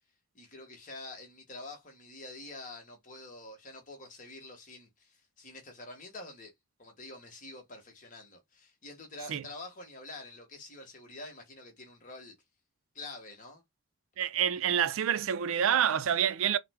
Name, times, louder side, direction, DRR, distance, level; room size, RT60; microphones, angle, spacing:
voice 1, 0.3-6.5 6.8-12.3 12.9-13.6, left 2 dB, 35° left, 1.0 m, -47 dB
voice 2, 14.2-16.6, right 9 dB, 70° right, 0.4 m, -27 dB
3.4 x 2.1 x 3.4 m
head